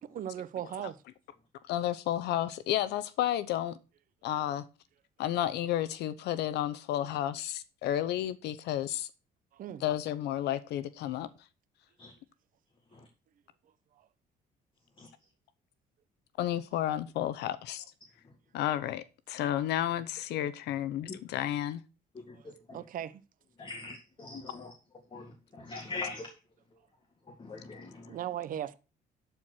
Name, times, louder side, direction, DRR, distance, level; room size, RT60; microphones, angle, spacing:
voice 1, 0.1-1.0 9.5-9.8 22.7-23.1 28.1-28.8, right 11 dB, 55° right, 0.8 m, -37 dB
voice 2, 1.7-3.7 4.2-4.6 5.2-9.1 9.8-11.3 16.4-17.8 18.5-21.8, left 12 dB, 80° left, 0.8 m, -31 dB
voice 3, 22.3-22.8 23.6-24.7 25.1-26.3 27.4-28.2, left 3 dB, 30° left, 2.0 m, -42 dB
12.0 x 4.5 x 6.3 m
cardioid pair, 110°, 17 cm